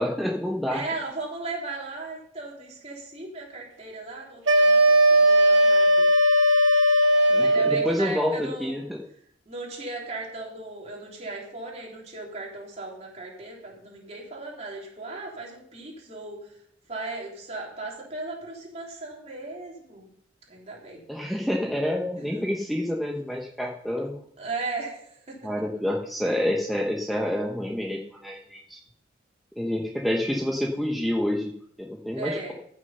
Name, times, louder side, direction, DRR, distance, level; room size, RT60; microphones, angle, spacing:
voice 1, 0.0-0.8 7.3-9.0 21.1-24.2 25.4-28.8 29.6-31.5 31.8-32.5, left 1 dB, ahead, -1 dB, 1.0 m, -28 dB
voice 2, 0.7-6.1 7.4-8.8 9.5-16.5 16.9-20.1 20.5-21.0 22.2-22.4 24.4-25.4 32.2-32.5, right 3 dB, 35° right, -2 dB, 3.5 m, -37 dB
sound 1, 4.5-7.9, equal, 80° right, 1.9 m, -18 dB
15.0 x 6.8 x 5.5 m, 0.68 s
head